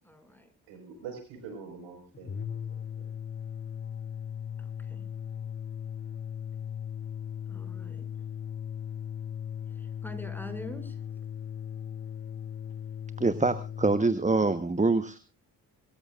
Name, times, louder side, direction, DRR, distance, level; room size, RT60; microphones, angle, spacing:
voice 1, 0.0-0.5 4.6-5.0 7.5-8.1 9.7-11.0, left 1 dB, 5° left, 7 dB, 6.4 m, -44 dB
voice 2, 0.7-2.6 2.9-3.1, right 6 dB, 75° right, 4 dB, 4.9 m, -44 dB
sound 1, 2.1-14.1, left 8 dB, 25° left, 0.9 m, -38 dB
voice 3, 13.2-15.2, right 3 dB, 15° right, 12 dB, 1.2 m, -25 dB
25.0 x 14.5 x 2.5 m, 0.34 s
hypercardioid pair, 40°, 46 cm